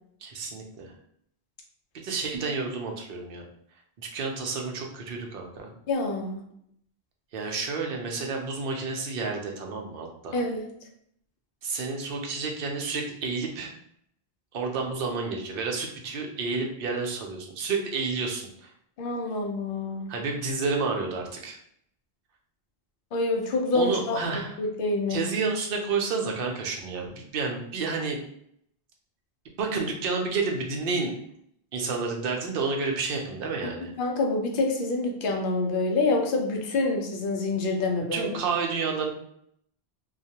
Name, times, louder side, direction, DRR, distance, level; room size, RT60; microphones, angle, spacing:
voice 1, 0.2-0.9 2.0-3.4 4.0-5.7 7.3-10.4 11.6-13.7 14.5-18.7 20.1-21.6 23.7-24.6 25.1-28.2 29.6-31.1 31.7-33.9 38.1-39.1, right 4 dB, 65° right, 2 dB, 0.7 m, -30 dB
voice 2, 5.9-6.4 10.3-10.7 19.0-20.1 23.1-25.2 34.0-38.3, left 2 dB, 65° left, 1 dB, 0.7 m, -27 dB
2.3 x 2.1 x 2.7 m, 0.69 s
omnidirectional pair, 1.0 m